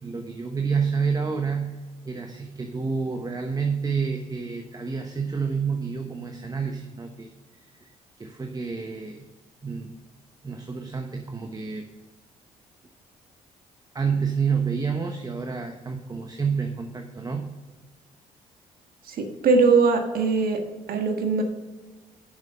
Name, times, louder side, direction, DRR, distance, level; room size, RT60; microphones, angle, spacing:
voice 1, 0.0-7.3 7.8-7.9 8.2-9.2 9.6-9.9 10.4-11.8 13.9-17.5, right 5 dB, 25° right, 5 dB, 1.0 m, -29 dB
voice 2, 19.1-20.6 20.9-21.4, right 4 dB, 65° right, 5 dB, 1.5 m, -21 dB
7.1 x 6.3 x 5.6 m, 1.2 s
supercardioid pair, 55°, 16 cm